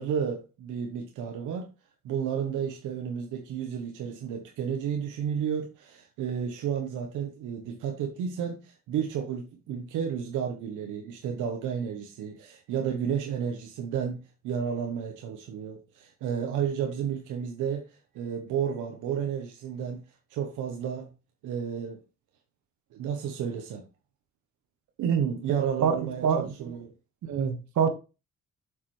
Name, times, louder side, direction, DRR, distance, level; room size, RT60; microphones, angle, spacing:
voice 1, 0.0-1.7 2.0-20.0 20.3-21.1 21.4-22.0 22.9-23.8 25.0-26.9, right 8 dB, 90° right, 1.1 m, -32 dB
voice 2, 25.5-26.5 27.2-27.9, right 6 dB, 70° right, 1.7 m, -26 dB
7.4 x 6.7 x 3.2 m
cardioid pair, 90°, 30 cm